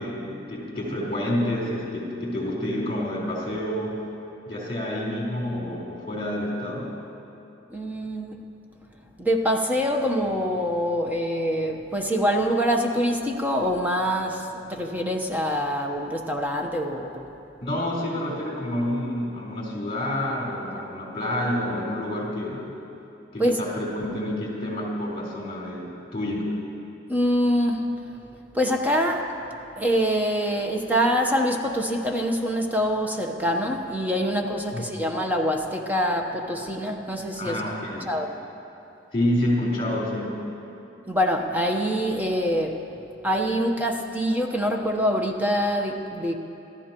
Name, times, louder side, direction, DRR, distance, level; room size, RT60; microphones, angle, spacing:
voice 1, 0.0-4.0 4.5-6.9 17.6-22.8 23.3-26.5 34.7-34.9 37.3-38.1 39.1-40.3, left 1 dB, 30° left, -4 dB, 4.2 m, -28 dB
voice 2, 7.7-8.5 9.2-17.3 23.4-23.6 27.1-27.9 28.5-29.3 29.8-37.6 38.1-38.3 41.1-42.8 43.2-46.3, equal, 10° right, 2 dB, 1.0 m, -25 dB
27.0 x 14.5 x 3.0 m, 2.9 s
head